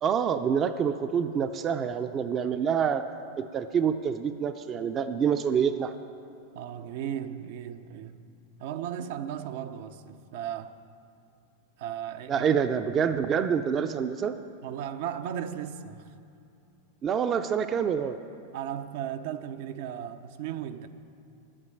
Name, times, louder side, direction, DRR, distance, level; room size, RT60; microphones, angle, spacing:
voice 1, 0.0-3.1 3.4-5.9 12.3-14.4 17.0-18.2, right 7 dB, 30° right, 0.5 m, -27 dB
voice 2, 6.5-8.2 8.6-10.8 11.8-12.5 14.6-16.1 18.5-20.9, right 9 dB, 65° right, 0.7 m, -36 dB
10.0 x 8.8 x 9.8 m
hypercardioid pair, 125°, 0 cm